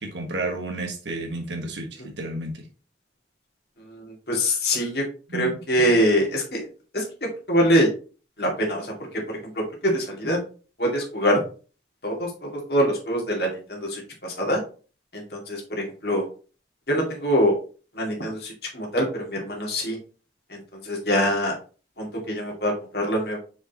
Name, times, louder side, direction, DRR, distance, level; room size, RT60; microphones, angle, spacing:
voice 1, 0.0-2.5 5.3-5.9, right 2 dB, 75° right, 3 dB, 1.5 m, -32 dB
voice 2, 3.8-5.0 5.3-6.7 6.9-7.0 7.5-7.9 8.4-8.9 9.3-10.4 10.8-11.4 12.0-14.6 15.1-16.3 16.9-17.5 17.9-20.0 20.5-21.5 22.0-23.4, equal, 55° left, -1 dB, 2.2 m, -24 dB
6.3 x 5.0 x 3.0 m, 0.37 s
head